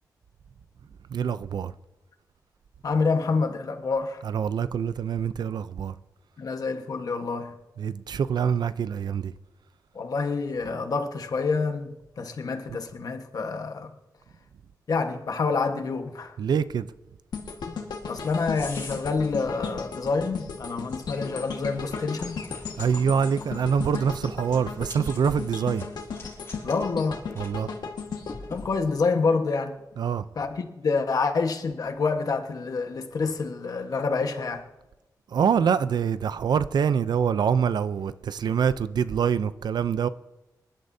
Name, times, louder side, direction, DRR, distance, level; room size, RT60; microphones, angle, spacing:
voice 1, 1.1-1.7 4.2-6.0 7.8-9.3 16.4-16.9 22.8-25.9 27.4-27.7 30.0-30.2 35.3-40.1, right 7 dB, 80° right, 0.5 m, -25 dB
voice 2, 2.8-4.2 6.4-7.5 9.9-13.9 14.9-16.3 18.1-22.4 26.6-27.2 28.5-29.8 30.3-34.7, left 4 dB, 60° left, 1.3 m, -27 dB
sound 1, 17.3-29.5 29.9-30.1, left 5 dB, 80° left, 1.6 m, -36 dB
sound 2, 17.6-29.1, left 3 dB, 35° left, 5.8 m, -47 dB
26.0 x 11.5 x 2.7 m
wide cardioid pair, 150°, 7 cm